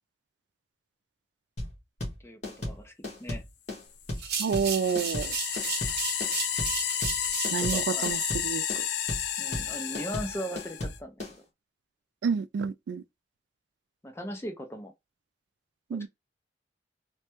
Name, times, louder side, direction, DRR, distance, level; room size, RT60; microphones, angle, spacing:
sound 1, 1.6-11.3, left 1 dB, 40° left, 1.4 m, -35 dB
voice 1, 2.7-3.4 7.6-8.1 9.4-11.1 14.0-14.9, equal, 15° left, 0.5 m, -38 dB
sound 2, 4.1-8.3, right 6 dB, 65° right, 0.8 m, -35 dB
sound 3, 4.2-11.0, left 9 dB, 70° left, 0.4 m, -32 dB
voice 2, 4.4-5.4 7.5-8.8 12.2-13.0 15.9-16.1, right 6 dB, 90° right, 0.3 m, -29 dB
3.1 x 2.2 x 2.9 m
head